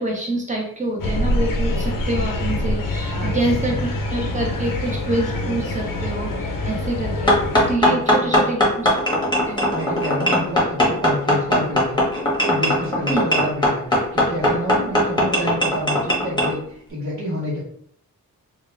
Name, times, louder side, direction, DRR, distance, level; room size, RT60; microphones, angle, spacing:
voice 1, 0.0-3.7 4.1-7.4 7.7-9.0 9.5-9.7 13.1-13.2, right 2 dB, 20° right, -1 dB, 1.0 m, -26 dB
sound 1, 1.0-7.7, left 1 dB, 70° left, 0.6 m, -25 dB
voice 2, 3.1-3.8 7.9-8.6 9.7-17.6, equal, 55° right, -9 dB, 1.3 m, -29 dB
sound 2, 7.3-16.5, left 1 dB, 15° left, 1.1 m, -19 dB
3.6 x 2.5 x 3.3 m, 0.62 s
wide cardioid pair, 145°, 35 cm